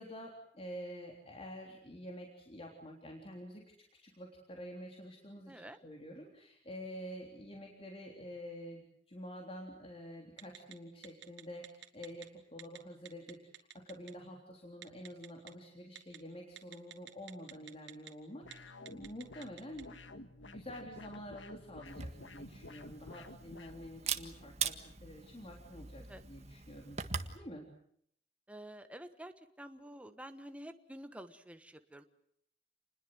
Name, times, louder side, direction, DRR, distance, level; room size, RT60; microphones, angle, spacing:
voice 1, 0.0-3.6 4.0-27.7, equal, 30° left, 1 dB, 3.6 m, -48 dB
voice 2, 5.5-5.8 26.0-26.2 28.5-32.1, right 1 dB, 5° right, 8 dB, 1.3 m, -49 dB
Telephone, 10.4-10.7 11.0-12.2 12.6-12.8 13.0-14.1 14.8-15.5 16.0-16.2 16.6-18.1 18.4-18.5 18.9-19.8, right 10 dB, 80° right, 2.9 m, -49 dB
sound 1, 18.4-23.7, left 2 dB, 80° left, 1.8 m, -52 dB
Camera, 21.9-27.4, right 6 dB, 35° right, 1.7 m, -42 dB
29.0 x 21.0 x 7.9 m, 0.69 s
head